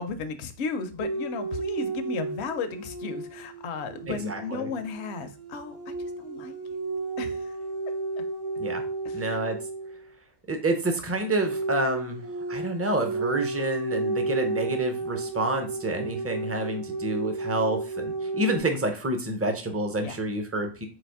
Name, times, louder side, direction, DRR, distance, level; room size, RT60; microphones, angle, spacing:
voice 1, 0.0-6.6 7.2-7.6 9.0-9.4 20.0-20.2, left 5 dB, 65° left, 9 dB, 0.8 m, -35 dB
sound 1, 1.0-10.1 11.2-18.6, right 3 dB, 85° right, 1.6 m, -33 dB
voice 2, 4.1-4.7 8.6-8.8 9.1-9.6 10.5-20.9, right 1 dB, 20° right, 5 dB, 0.4 m, -28 dB
4.1 x 2.8 x 4.5 m, 0.36 s
omnidirectional pair, 1.3 m